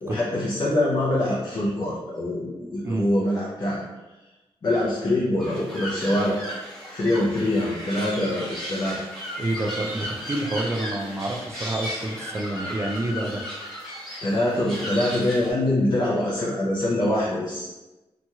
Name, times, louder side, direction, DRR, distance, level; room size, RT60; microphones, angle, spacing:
voice 1, 0.0-3.8 4.6-6.4 6.9-9.0 14.2-17.7, left 1 dB, 40° left, -6 dB, 0.5 m, -24 dB
sound 1, 5.4-15.5, equal, ahead, 1.1 m, -35 dB
voice 2, 9.4-13.4, right 1 dB, 25° right, 1 dB, 0.3 m, -28 dB
2.9 x 2.8 x 2.3 m, 1.1 s
wide cardioid pair, 170°, 10 cm